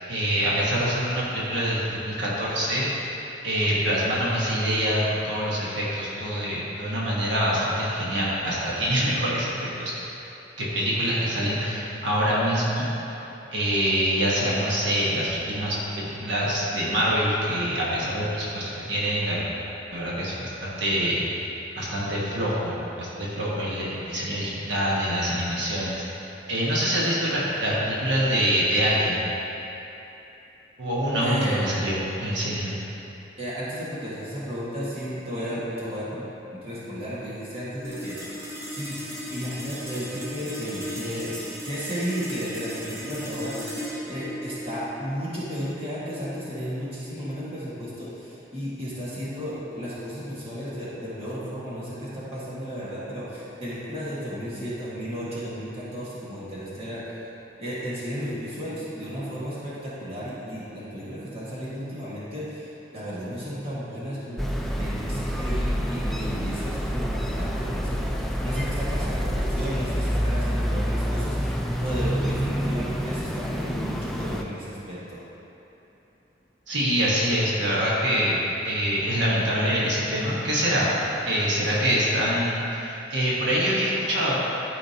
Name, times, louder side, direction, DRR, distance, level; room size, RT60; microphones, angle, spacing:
voice 1, 0.1-3.1 3.4-9.9 10.6-13.2 13.5-19.4 19.9-21.2 21.7-29.2 30.8-32.7 76.7-78.4 78.6-84.3, equal, 75° right, -7 dB, 1.4 m, -25 dB
voice 2, 31.2-31.6 33.4-36.3 36.5-38.4 38.7-39.0 39.3-41.3 41.6-57.1 57.6-75.2, equal, 30° right, -9 dB, 1.6 m, -33 dB
sound 1, 37.8-48.5, equal, 15° right, 0.8 m, -37 dB
sound 2, 64.4-74.4, equal, ahead, 0.3 m, -27 dB
12.5 x 5.0 x 2.9 m, 3.0 s
head